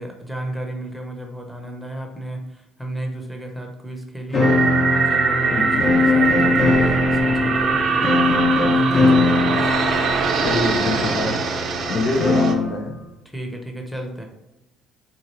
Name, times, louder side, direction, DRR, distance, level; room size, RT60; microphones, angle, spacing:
voice 1, 0.0-4.5 4.9-9.6 13.3-14.2, right 1 dB, ahead, 2 dB, 0.8 m, -32 dB
sound 1, 4.3-12.7, left 2 dB, 45° left, 1.0 m, -21 dB
sound 2, 4.4-12.5, right 5 dB, 60° right, 0.6 m, -22 dB
voice 2, 5.5-5.9 10.4-11.4 11.9-12.9, left 2 dB, 60° left, 3 dB, 0.6 m, -24 dB
4.2 x 2.4 x 3.2 m, 0.95 s
supercardioid pair, 90°, 0 cm